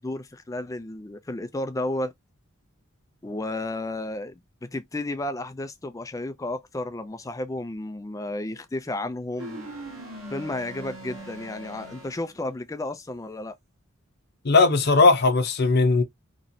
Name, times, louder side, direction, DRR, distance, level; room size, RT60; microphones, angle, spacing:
voice 1, 0.0-2.1 3.2-9.7 10.3-13.6, left 2 dB, 15° left, 0.4 m, -32 dB
sound 1, 9.4-12.5, right 2 dB, 80° right, 1.3 m, -40 dB
voice 2, 14.4-16.0, left 3 dB, 50° left, 0.7 m, -18 dB
3.0 x 2.8 x 2.6 m
head